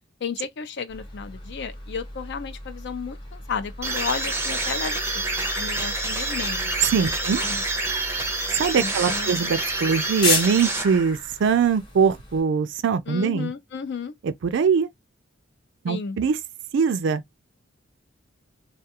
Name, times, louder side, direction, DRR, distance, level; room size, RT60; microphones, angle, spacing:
voice 1, 0.2-5.2 5.6-6.9 7.3-7.6 8.8-9.6 13.1-14.1 15.9-16.2, left 5 dB, 60° left, 0.5 m, -33 dB
sound 1, 0.9-12.4, left 2 dB, 25° left, 0.9 m, -35 dB
sound 2, 3.8-11.3, right 2 dB, 10° right, 0.6 m, -28 dB
voice 2, 6.9-7.4 8.5-13.5 14.4-14.9 15.8-16.4 16.7-17.2, right 6 dB, 60° right, 0.4 m, -22 dB
2.3 x 2.3 x 2.7 m
head